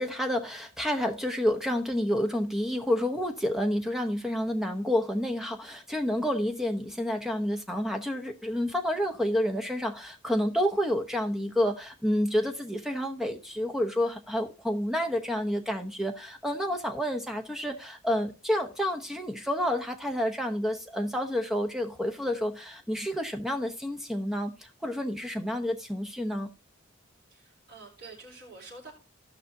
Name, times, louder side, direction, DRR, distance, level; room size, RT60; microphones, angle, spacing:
voice 1, 0.0-26.5, equal, ahead, 0.8 m, -29 dB
voice 2, 27.3-28.9, right 3 dB, 50° right, 3.7 m, -47 dB
17.0 x 5.7 x 2.7 m
head